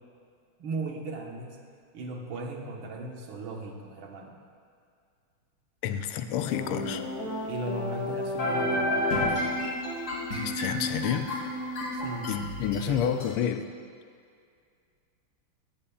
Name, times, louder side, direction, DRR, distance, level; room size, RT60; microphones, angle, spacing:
voice 1, 0.6-1.6 1.9-4.4 7.4-8.9 11.9-12.3 12.9-13.0, right 2 dB, 70° right, 1 dB, 1.8 m, -37 dB
voice 2, 5.8-7.0 10.4-11.3 12.2-13.7, left 9 dB, 85° left, 9 dB, 1.5 m, -29 dB
sound 1, 6.5-13.3, left 1 dB, 45° left, 2.9 m, -31 dB
15.5 x 14.0 x 2.3 m, 2.2 s
omnidirectional pair, 2.4 m